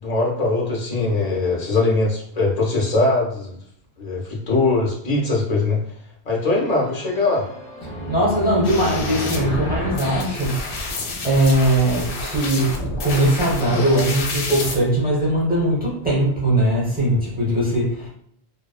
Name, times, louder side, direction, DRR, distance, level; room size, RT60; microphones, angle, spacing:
voice 1, 0.0-3.5 4.0-5.8 6.2-7.5, left 3 dB, 45° left, -2 dB, 0.7 m, -21 dB
sound 1, 6.4-11.2, equal, 10° left, 0.4 m, -34 dB
voice 2, 8.1-18.1, right 1 dB, 10° right, -7 dB, 0.7 m, -20 dB
sound 2, 8.6-14.7, left 2 dB, 80° left, 0.8 m, -28 dB
2.9 x 2.0 x 2.3 m, 0.66 s
omnidirectional pair, 1.1 m